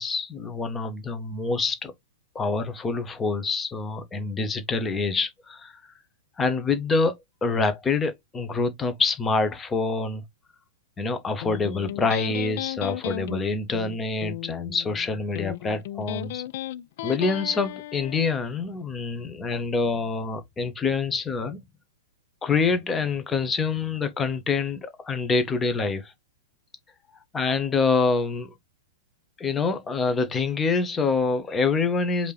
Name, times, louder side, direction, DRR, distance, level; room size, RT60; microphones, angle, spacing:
voice 1, 0.0-1.9 2.3-5.8 6.4-10.2 11.0-16.4 17.0-21.6 22.4-26.1 27.3-28.5 29.4-32.3, left 4 dB, 15° left, 1.0 m, -26 dB
Electric guitar, 11.4-18.4, left 14 dB, 50° left, 0.3 m, -35 dB
5.0 x 2.8 x 3.1 m
figure-of-eight pair, 105°, 0 cm